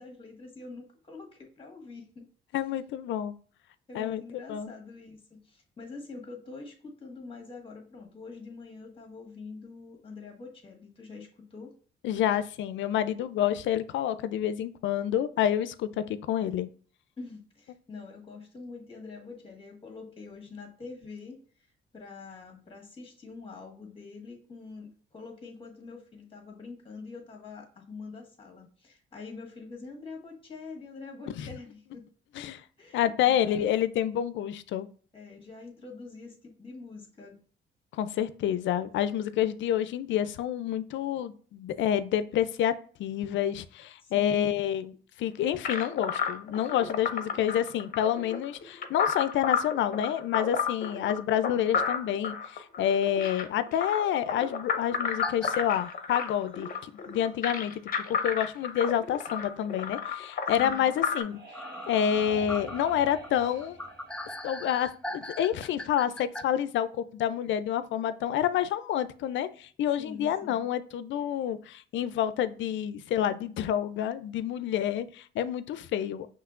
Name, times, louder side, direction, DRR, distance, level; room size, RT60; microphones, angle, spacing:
voice 1, 0.0-2.2 3.9-11.7 17.2-21.7 21.9-32.1 32.8-33.7 35.1-37.4 44.0-44.5 60.6-60.9 70.0-70.7, left 4 dB, 25° left, 1 dB, 1.5 m, -45 dB
voice 2, 2.5-3.3 3.9-4.2 4.5-4.7 12.0-16.7 31.4-31.5 32.3-32.6 32.9-34.9 37.9-42.7 43.0-57.8 58.2-61.4 61.9-63.8 64.4-76.3, left 10 dB, 70° left, 13 dB, 0.4 m, -28 dB
sound 1, 45.6-61.2, left 6 dB, 45° left, 0.7 m, -32 dB
sound 2, 55.2-55.5 56.0-56.1 57.5-57.6 58.3-58.4 58.6-58.7 61.5-66.4, left 1 dB, 5° left, 0.3 m, -40 dB
sound 3, 60.8-65.3, right 3 dB, 55° right, 1.6 m, -46 dB
5.6 x 3.1 x 2.4 m, 0.43 s
cardioid pair, 90°, 20 cm